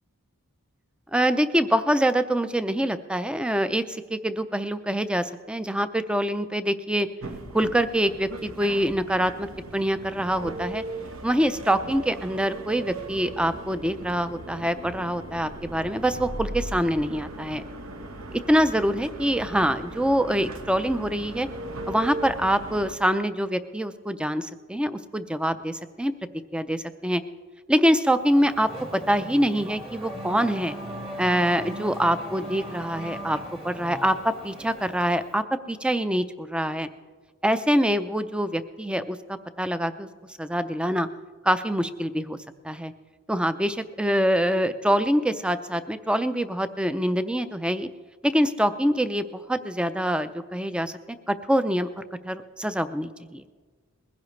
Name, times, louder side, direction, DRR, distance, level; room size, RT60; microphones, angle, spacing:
voice 1, 1.1-7.1 7.5-9.5 9.7-10.8 11.2-17.6 18.3-21.5 21.9-26.1 26.5-27.2 27.7-30.8 31.2-33.4 33.6-36.9 37.4-40.1 40.4-41.1 41.4-42.4 42.6-42.9 43.3-47.9 48.2-50.9 51.3-53.4, equal, 5° right, 11 dB, 0.4 m, -25 dB
sound 1, 7.2-22.9, right 2 dB, 70° right, 1.1 m, -38 dB
Race car auto racing / Accelerating revving vroom, 28.2-35.4, right 1 dB, 25° right, 1.4 m, -39 dB
21.0 x 15.5 x 3.2 m, 1.5 s
head